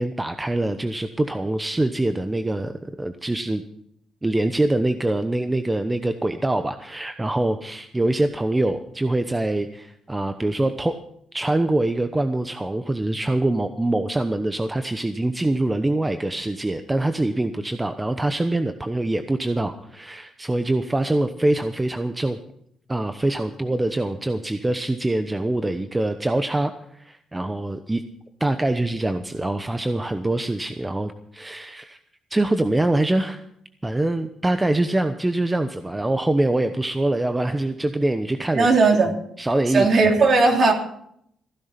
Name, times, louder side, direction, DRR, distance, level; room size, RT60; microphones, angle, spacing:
voice 1, 0.0-3.6 4.2-11.0 11.3-22.4 22.9-28.0 28.4-32.0 32.3-33.4 33.8-38.7 39.4-39.9, right 2 dB, 15° right, 9 dB, 0.9 m, -24 dB
voice 2, 38.5-39.1 39.7-40.7, right 3 dB, 50° right, 3 dB, 3.2 m, -17 dB
16.0 x 11.0 x 5.9 m, 0.70 s
cardioid pair, 90°, 0 cm